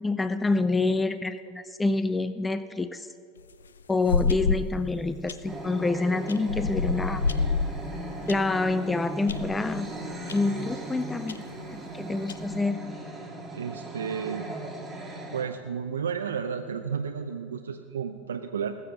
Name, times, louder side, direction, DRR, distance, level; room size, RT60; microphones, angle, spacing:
voice 1, 0.0-3.1 3.9-7.3 8.3-9.9 10.3-11.4 11.7-12.8, left 3 dB, 10° left, 13 dB, 0.5 m, -27 dB
sound 1, 3.4-4.8 5.3-5.6 6.3-8.4 8.9-9.0 9.3-9.6 10.3-10.4 10.7-10.8 11.3-11.4 12.1-12.6, left 4 dB, 85° left, 0.6 m, -28 dB
sound 2, 5.5-15.4, right 2 dB, 10° right, 2.7 m, -38 dB
voice 2, 13.5-14.5 14.8-14.9 15.3-18.8, right 7 dB, 80° right, 5 dB, 0.6 m, -32 dB
20.5 x 7.0 x 5.9 m, 2.6 s
hypercardioid pair, 90°, 0 cm